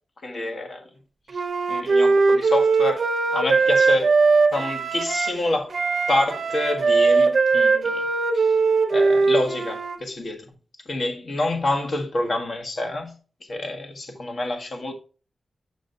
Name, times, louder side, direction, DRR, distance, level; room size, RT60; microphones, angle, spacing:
voice 1, 0.2-0.8 1.7-3.0 3.3-4.1 4.5-5.7 6.1-8.0 8.3-8.5 8.9-10.5 10.8-13.2 13.5-14.9, left 2 dB, 55° left, 1.5 m, -27 dB
Wind instrument woodwind instrument, 1.3-5.4 5.7-10.0, right 4 dB, 60° right, 0.6 m, -20 dB
6.5 x 6.3 x 2.6 m
wide cardioid pair, 85°, 0 cm